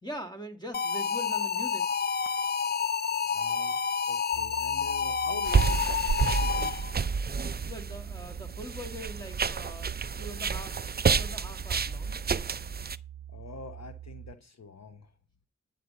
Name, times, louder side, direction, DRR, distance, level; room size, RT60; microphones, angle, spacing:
voice 1, 0.0-1.9 7.7-10.8 11.1-12.2, equal, 15° left, 2.0 m, -42 dB
sound 1, 0.7-7.0, left 6 dB, 35° left, 0.4 m, -29 dB
voice 2, 3.3-5.9 6.4-6.8 13.3-15.1, left 4 dB, 60° left, 1.0 m, -45 dB
sound 2, 4.3-14.3, right 11 dB, 85° right, 0.7 m, -45 dB
sound 3, 5.5-13.0, right 5 dB, 30° right, 0.5 m, -29 dB
9.5 x 5.3 x 6.6 m
cardioid pair, 50°, 31 cm